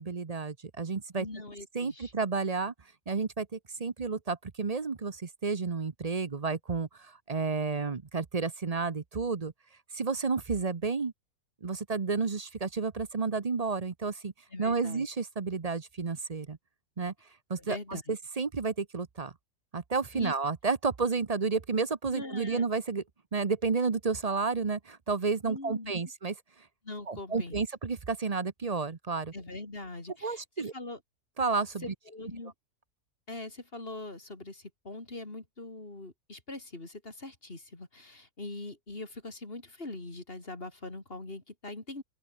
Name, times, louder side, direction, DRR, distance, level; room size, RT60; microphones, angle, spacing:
voice 1, 0.0-1.3 1.7-2.7 3.1-9.5 9.9-11.1 11.6-14.3 14.6-16.6 17.0-17.1 17.5-19.3 19.7-23.0 23.3-26.3 27.1-29.3 30.2-30.7 31.4-31.9, right 4 dB, 30° right, 0.8 m, -31 dB
voice 2, 1.1-2.1 14.5-15.1 17.6-18.2 20.1-20.3 22.1-22.6 25.4-26.1 26.8-27.6 29.3-31.0 31.8-32.5 33.3-42.0, left 2 dB, 35° left, 3.6 m, -42 dB
open air
omnidirectional pair, 1.6 m